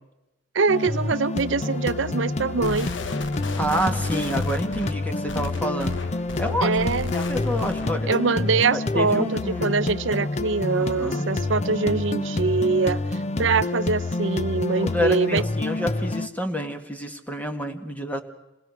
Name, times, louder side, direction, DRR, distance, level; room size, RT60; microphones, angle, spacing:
voice 1, 0.5-2.9 6.6-7.1 8.1-15.4, right 4 dB, 80° right, 15 dB, 0.7 m, -24 dB
sound 1, 0.7-16.3, left 2 dB, 35° left, 0.7 m, -28 dB
sound 2, 2.6-8.1, left 3 dB, 70° left, 1.1 m, -36 dB
voice 2, 3.6-6.0 6.4-6.8 7.1-8.1 8.7-9.7 10.8-11.2 14.8-18.2, equal, 10° left, 5 dB, 1.9 m, -28 dB
27.5 x 20.5 x 6.0 m, 0.99 s
head